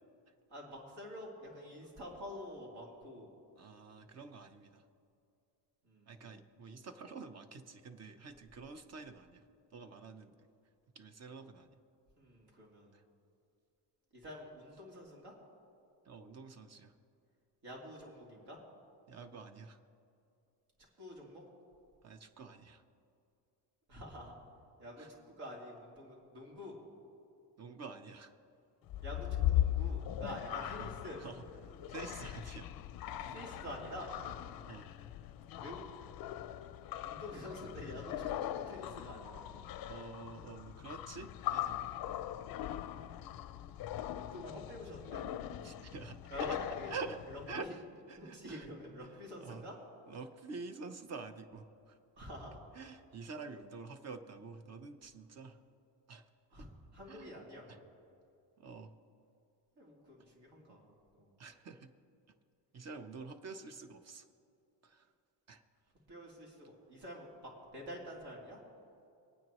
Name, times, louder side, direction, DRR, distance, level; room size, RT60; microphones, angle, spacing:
voice 1, 0.5-3.3 5.8-6.4 12.2-12.9 14.1-15.3 17.6-18.6 21.0-21.4 23.9-24.3 24.8-26.7 29.0-31.2 33.2-34.1 35.5-35.9 37.0-39.5 41.8-41.9 44.1-45.2 46.3-46.9 47.3-47.7 48.2-49.7 52.2-52.6 56.5-57.8 59.8-60.8 61.1-61.3 66.1-68.6, equal, 65° right, -3 dB, 3.2 m, -48 dB
voice 2, 3.6-4.8 6.1-9.4 9.7-10.4 10.9-11.8 12.9-13.0 16.1-16.9 19.1-19.8 22.0-22.8 25.0-25.1 27.6-28.3 30.6-30.9 31.2-31.4 31.9-32.7 34.6-34.9 39.9-42.2 45.6-46.6 46.9-47.2 47.5-48.7 49.0-49.1 49.4-49.7 50.1-52.0 52.7-55.6 56.1-56.2 56.6-56.7 57.1-57.3 57.7-57.8 58.6-58.9 60.7-60.9 61.4-61.9 62.7-64.3 64.8-65.1 65.5-65.6, right 4 dB, 35° right, 9 dB, 0.8 m, -48 dB
sound 1, 28.9-47.6, left 12 dB, 55° left, 0.5 m, -39 dB
24.5 x 9.3 x 3.1 m, 2.6 s
cardioid pair, 135°, 43 cm